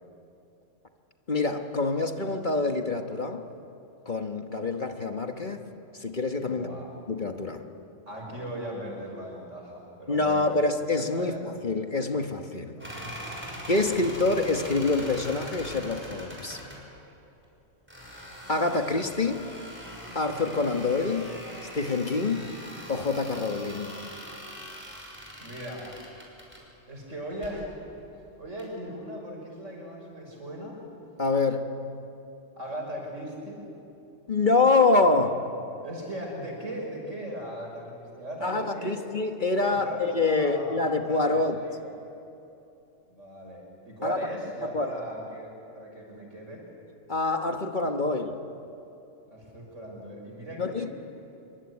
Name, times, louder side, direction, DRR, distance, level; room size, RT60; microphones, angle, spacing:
voice 1, 1.3-3.4 4.0-5.6 6.0-6.7 7.1-7.6 10.1-12.8 13.7-16.6 18.5-19.5 20.1-21.3 21.7-22.5 22.9-23.9 31.2-31.7 34.3-35.5 38.4-41.6 44.0-44.2 44.7-45.0 47.1-48.4 50.6-50.9, left 3 dB, 40° left, 5 dB, 1.4 m, -26 dB
voice 2, 6.4-6.9 8.1-10.5 11.1-11.4 12.8-13.4 25.4-26.0 26.9-28.0 28.4-30.8 32.5-33.6 35.8-39.0 39.6-41.4 41.8-41.9 43.1-46.6 49.3-50.9, equal, 75° right, 0 dB, 6.4 m, -38 dB
sound 1, 12.8-16.8 17.9-26.6 27.3-27.6 28.6-28.7, equal, 10° right, 6.1 m, -42 dB
26.0 x 23.5 x 9.7 m, 2.8 s
omnidirectional pair, 1.3 m